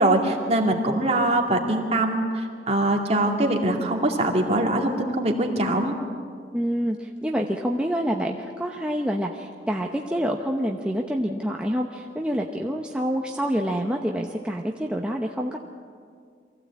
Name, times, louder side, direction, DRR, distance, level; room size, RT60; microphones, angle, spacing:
voice 1, 0.0-5.9, right 1 dB, 35° right, 1 dB, 2.4 m, -23 dB
voice 2, 6.5-15.6, equal, 5° right, 0 dB, 0.9 m, -27 dB
23.5 x 15.5 x 8.5 m, 2.1 s
head